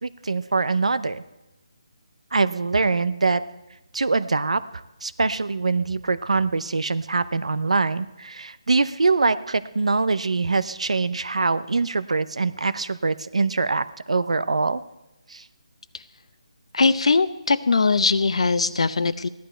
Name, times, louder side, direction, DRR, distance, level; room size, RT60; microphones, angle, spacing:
voice 1, 0.0-1.2 2.3-3.4 3.9-14.8 15.3-15.4, right 3 dB, 85° right, 15 dB, 0.7 m, -23 dB
voice 2, 16.7-19.3, left 4 dB, 70° left, 15 dB, 0.7 m, -20 dB
15.5 x 11.5 x 4.4 m, 0.99 s
hypercardioid pair, 165°, 3 cm